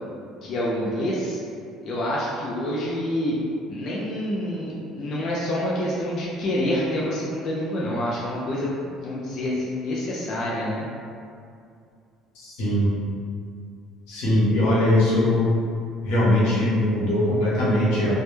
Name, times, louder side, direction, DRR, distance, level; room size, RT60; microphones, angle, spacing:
voice 1, 0.4-1.4 1.8-3.4 3.7-8.7 9.0-10.9, left 1 dB, 50° left, -6 dB, 0.4 m, -27 dB
voice 2, 12.4-12.9 14.1-15.6 16.0-18.1, left 1 dB, 90° left, -8 dB, 0.8 m, -21 dB
2.1 x 2.1 x 3.0 m, 2.4 s
cardioid pair, 120°, 0 cm